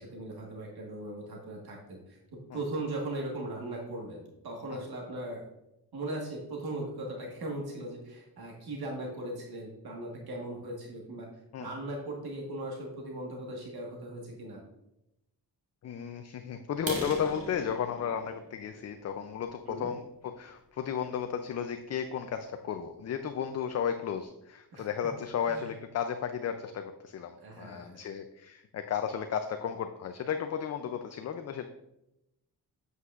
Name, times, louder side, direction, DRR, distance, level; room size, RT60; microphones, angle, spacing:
voice 1, 0.0-2.2 2.5-5.5 5.9-11.3 11.6-14.6 19.7-19.9 24.7-24.9 25.4-25.7 27.4-28.0, right 1 dB, 70° right, -1 dB, 1.5 m, -38 dB
voice 2, 15.8-31.7, left 8 dB, 45° left, 7 dB, 0.4 m, -34 dB
sound 1, 16.7-20.5 21.0-21.2 21.7-21.8 22.2-22.4 22.7-22.8 23.2-23.3 23.6-24.1, right 1 dB, 35° right, 1.8 m, -41 dB
8.1 x 7.8 x 2.4 m, 0.88 s
wide cardioid pair, 145°, 39 cm